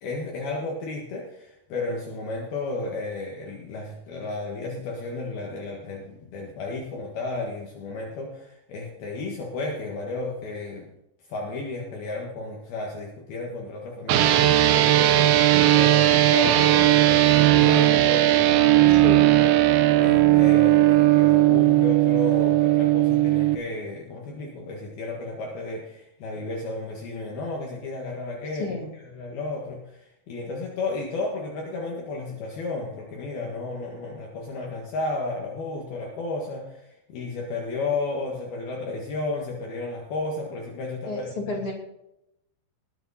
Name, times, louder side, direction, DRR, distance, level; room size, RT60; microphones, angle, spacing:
voice 1, 0.0-10.9 11.3-19.6 20.0-28.7 29.1-41.4, left 3 dB, 65° left, -1 dB, 3.4 m, -33 dB
sound 1, 14.1-23.6, right 14 dB, 70° right, 2.5 m, -18 dB
voice 2, 18.9-19.4 28.5-28.9 41.0-41.7, left 3 dB, 35° left, -1 dB, 3.0 m, -31 dB
20.0 x 9.1 x 4.2 m, 0.84 s
omnidirectional pair, 5.0 m